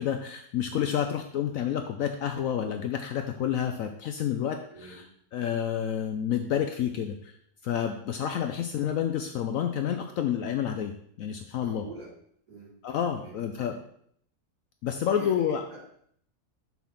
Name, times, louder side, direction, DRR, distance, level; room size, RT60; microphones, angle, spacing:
voice 1, 0.0-5.0 5.3-7.3 7.6-10.9 11.2-11.8 12.8-13.8 14.8-15.6, left 9 dB, 70° left, 5 dB, 0.9 m, -29 dB
voice 2, 4.7-5.0 8.8-9.0 11.6-12.1 12.5-12.8 13.2-13.4 15.1-15.9, right 2 dB, 85° right, -6 dB, 3.3 m, -45 dB
6.0 x 3.5 x 5.7 m, 0.66 s
omnidirectional pair, 1.7 m